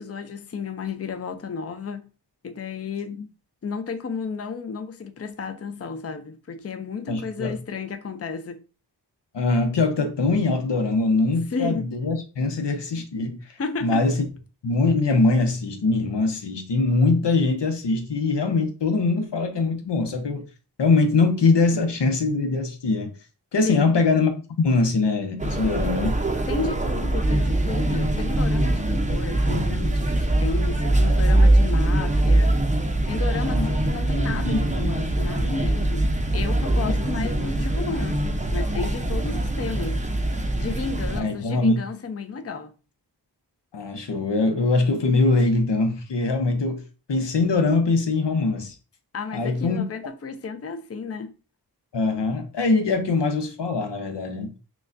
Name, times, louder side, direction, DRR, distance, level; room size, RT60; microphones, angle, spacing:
voice 1, 0.0-2.1 2.4-3.3 3.6-8.6 11.4-11.9 13.6-14.1 23.7-24.0 26.5-32.8 33.1-40.0 40.6-42.7 49.1-51.3, left 5 dB, 35° left, 0.5 m, -33 dB
voice 2, 7.1-7.5 9.3-14.3 14.6-20.4 20.8-23.1 23.5-24.3 24.6-26.2 33.5-33.7 34.2-34.9 36.8-37.3 41.2-41.8 43.7-46.8 47.1-48.7 49.3-49.8 51.9-54.5, left 3 dB, 90° left, 0.8 m, -22 dB
sound 1, 25.4-41.2, right 1 dB, 20° right, 0.5 m, -22 dB
6.0 x 2.2 x 2.5 m
wide cardioid pair, 60°, 41 cm